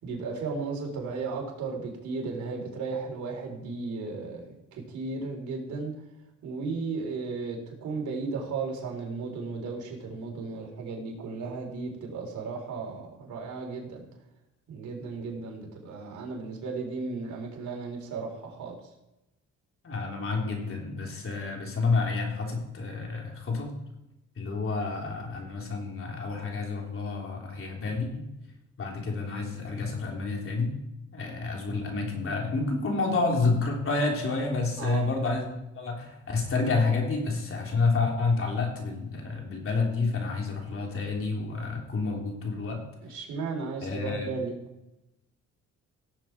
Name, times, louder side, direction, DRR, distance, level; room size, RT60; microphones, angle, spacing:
voice 1, 0.0-4.5 4.7-5.9 6.4-14.0 14.7-18.7 34.8-35.1 43.0-44.6, right 4 dB, 70° right, 0 dB, 3.9 m, -35 dB
voice 2, 19.8-23.7 24.4-28.2 28.8-30.7 31.1-42.8 43.8-44.3, left 3 dB, 45° left, 0 dB, 3.5 m, -29 dB
17.0 x 7.5 x 4.5 m, 0.93 s
cardioid pair, 90°, 30 cm